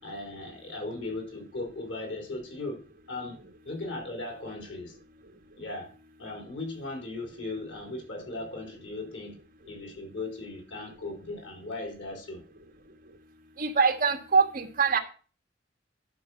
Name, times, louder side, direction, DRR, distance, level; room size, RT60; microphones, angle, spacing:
voice 1, 0.0-5.0 5.6-5.9 6.2-9.4 9.7-12.4, left 2 dB, 90° left, 2 dB, 4.0 m, -38 dB
voice 2, 13.6-15.0, right 5 dB, 50° right, 5 dB, 1.6 m, -24 dB
11.5 x 5.6 x 5.5 m, 0.37 s
head